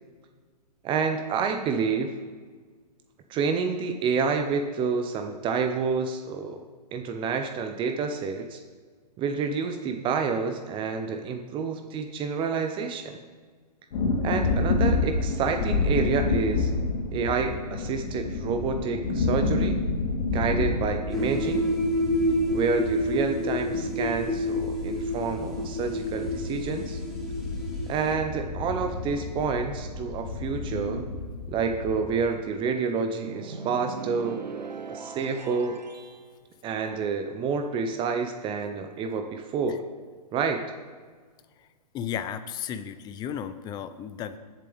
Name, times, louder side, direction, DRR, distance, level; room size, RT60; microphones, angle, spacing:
voice 1, 0.8-2.1 3.3-6.6 6.9-8.6 9.2-13.2 14.2-16.7 17.1-19.8 20.3-21.7 22.5-27.0 27.9-31.0 31.5-34.4 34.9-35.8 36.6-39.9 40.3-40.6, right 5 dB, 25° right, 6 dB, 0.8 m, -28 dB
sound 1, 13.9-32.1, left 3 dB, 55° left, 3.3 m, -30 dB
sound 2, 21.1-28.1, equal, ahead, 2.4 m, -29 dB
sound 3, 33.2-36.2, right 5 dB, 90° right, 0.9 m, -39 dB
voice 2, 41.9-44.4, left 9 dB, 20° left, 11 dB, 0.6 m, -34 dB
22.5 x 7.5 x 3.5 m, 1.5 s
hypercardioid pair, 120°, 21 cm